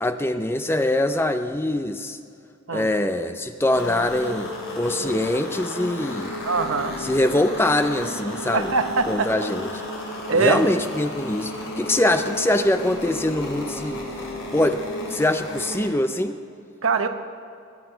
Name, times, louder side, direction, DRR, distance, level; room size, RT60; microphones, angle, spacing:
voice 1, 0.0-2.2 2.7-6.4 7.0-8.7 9.1-9.7 10.3-14.0 14.5-14.8 15.1-16.4, left 1 dB, 10° left, 8 dB, 0.5 m, -23 dB
sound 1, 3.7-15.9, left 1 dB, 65° left, 3.8 m, -33 dB
voice 2, 6.4-7.0 8.5-9.3 10.3-10.6 16.8-17.1, right 4 dB, 80° right, 7 dB, 1.0 m, -22 dB
22.0 x 9.9 x 5.6 m, 2.4 s
head